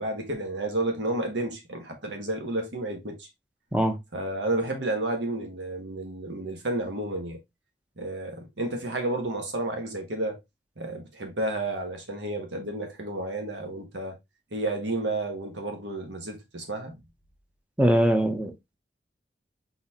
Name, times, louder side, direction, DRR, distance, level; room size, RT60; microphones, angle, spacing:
voice 1, 0.0-3.3 4.1-7.4 8.0-10.4 10.8-14.2 14.5-17.0, right 2 dB, 80° right, 1.4 m, -31 dB
voice 2, 17.8-18.8, equal, 5° right, 0.6 m, -22 dB
4.2 x 4.0 x 2.8 m
head